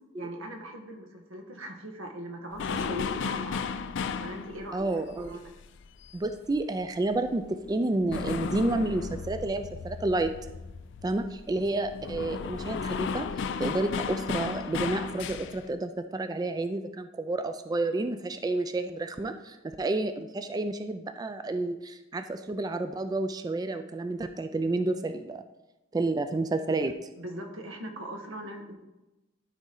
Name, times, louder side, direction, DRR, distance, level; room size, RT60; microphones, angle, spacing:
voice 1, 0.1-3.9 4.2-5.4 26.7-26.9 27.2-28.7, right 1 dB, 85° right, 3 dB, 1.3 m, -40 dB
sound 1, 2.5-6.8 7.1-15.7, left 5 dB, 65° left, 0.4 m, -35 dB
voice 2, 4.7-5.4 6.1-10.3 11.0-13.3 13.6-25.4 25.9-26.9, right 2 dB, 20° right, 8 dB, 0.3 m, -30 dB
12.0 x 4.1 x 3.8 m, 1.0 s
head